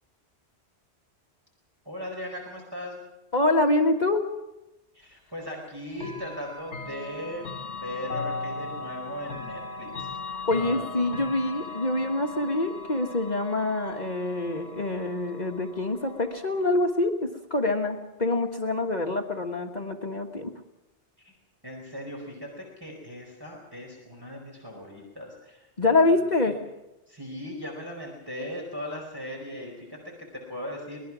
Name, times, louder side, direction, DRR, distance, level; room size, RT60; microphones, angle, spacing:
voice 1, 1.8-3.0 4.9-11.2 21.2-21.3 21.6-26.5 27.1-31.0, left 1 dB, 20° right, -1 dB, 4.6 m, -38 dB
voice 2, 3.3-4.3 10.5-20.5 25.8-26.5, left 2 dB, 40° left, 3 dB, 1.5 m, -25 dB
Chime / Clock, 5.9-16.8, left 4 dB, 80° left, 1.7 m, -38 dB
24.0 x 20.0 x 6.1 m, 0.94 s
omnidirectional pair, 1.1 m